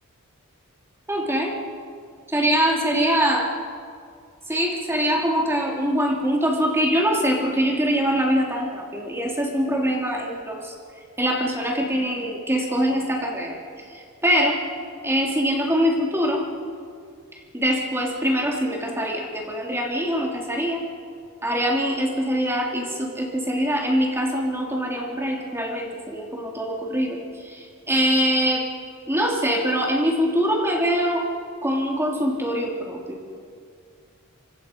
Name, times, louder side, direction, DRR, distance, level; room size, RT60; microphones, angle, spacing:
voice 1, 1.1-1.6 2.3-3.5 4.5-10.7 11.2-13.6 13.9-14.6 15.0-16.4 17.5-20.8 21.4-28.6 29.1-31.3 31.6-33.2, equal, 10° right, 0 dB, 3.2 m, -23 dB
27.5 x 24.5 x 5.3 m, 2.2 s
head